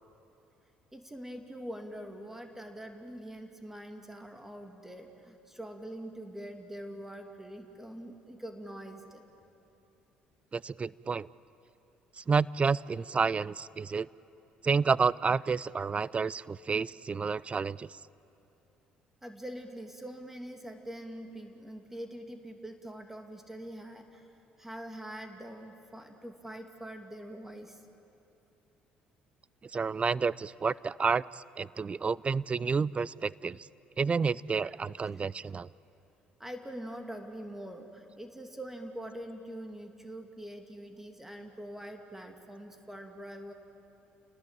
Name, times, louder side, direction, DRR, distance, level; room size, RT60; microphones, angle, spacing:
voice 1, 0.9-9.2 19.2-24.3 24.6-27.8 35.1-35.5 36.4-43.5, right 1 dB, 10° right, 5 dB, 2.6 m, -44 dB
voice 2, 10.5-11.3 12.2-14.1 14.6-18.0 29.6-33.7 34.0-35.7, right 5 dB, 35° right, 22 dB, 0.5 m, -30 dB
29.0 x 18.5 x 9.1 m, 2.9 s
hypercardioid pair, 65°, 4 cm